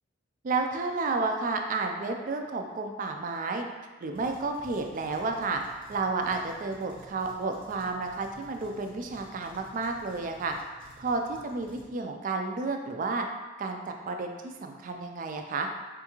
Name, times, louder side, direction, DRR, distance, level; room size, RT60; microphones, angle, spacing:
voice 1, 0.4-3.7 4.0-5.6 5.9-10.6 11.0-13.2 13.6-13.8 14.1-15.7, right 3 dB, 40° right, 4 dB, 0.3 m, -31 dB
sound 1, 4.1-11.8, equal, 30° left, 0.6 m, -54 dB
4.3 x 2.3 x 2.9 m, 1.2 s
head